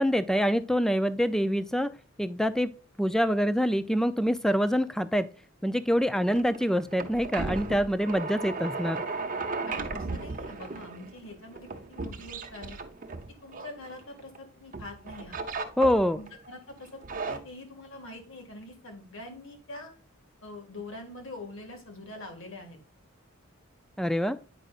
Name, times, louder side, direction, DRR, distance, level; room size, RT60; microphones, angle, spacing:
voice 1, 0.0-1.9 2.2-2.7 3.0-5.3 5.6-9.0 15.8-16.2 24.0-24.4, equal, ahead, 13 dB, 0.4 m, -25 dB
sound 1, 6.0-14.4 14.7-16.4 16.9-17.4, right 3 dB, 40° right, 0.8 m, -36 dB
voice 2, 9.7-12.8 13.4-15.4 16.1-19.9 20.4-22.8, left 2 dB, 65° left, 3 dB, 1.9 m, -44 dB
8.9 x 5.1 x 2.4 m, 0.38 s
head